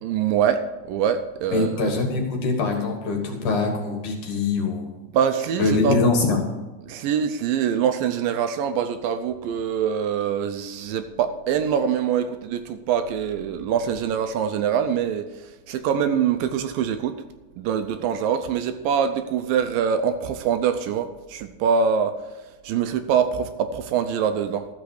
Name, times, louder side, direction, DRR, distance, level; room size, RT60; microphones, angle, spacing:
voice 1, 0.0-1.9 5.1-6.0 6.9-17.2 17.6-22.2 22.6-24.7, right 7 dB, 80° right, 9 dB, 2.2 m, -24 dB
voice 2, 1.5-4.9 5.6-6.4, left 3 dB, 60° left, 3 dB, 2.8 m, -23 dB
13.5 x 6.9 x 6.4 m, 1.2 s
omnidirectional pair, 4.3 m